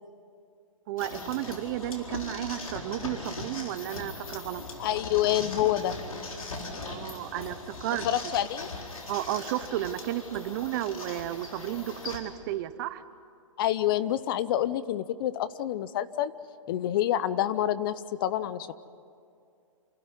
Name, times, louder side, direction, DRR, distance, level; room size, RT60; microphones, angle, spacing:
voice 1, 0.9-4.6 6.9-8.1 9.1-13.0, right 13 dB, 40° right, 13 dB, 0.9 m, -33 dB
sound 1, 1.0-12.2, left 3 dB, 90° left, 4.2 m, -40 dB
voice 2, 4.8-6.0 8.0-8.7 13.6-16.3 16.7-17.9 18.2-18.7, left 12 dB, 40° left, 15 dB, 0.8 m, -27 dB
28.0 x 13.0 x 9.8 m, 2.4 s
hypercardioid pair, 140°, 17 cm